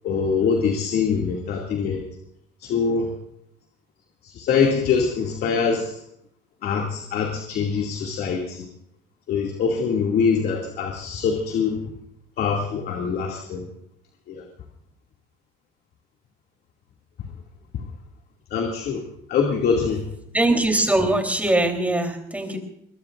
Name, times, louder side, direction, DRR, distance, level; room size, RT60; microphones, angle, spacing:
voice 1, 0.0-2.0 2.6-3.1 4.2-5.9 6.6-8.7 9.3-11.8 12.4-13.7 14.3-14.4 18.5-19.0 19.3-20.0, left 5 dB, 70° left, 1 dB, 2.5 m, -23 dB
voice 2, 20.3-22.6, right 1 dB, 10° right, 4 dB, 3.6 m, -21 dB
23.0 x 22.5 x 2.6 m, 0.75 s
cardioid pair, 110°, 17 cm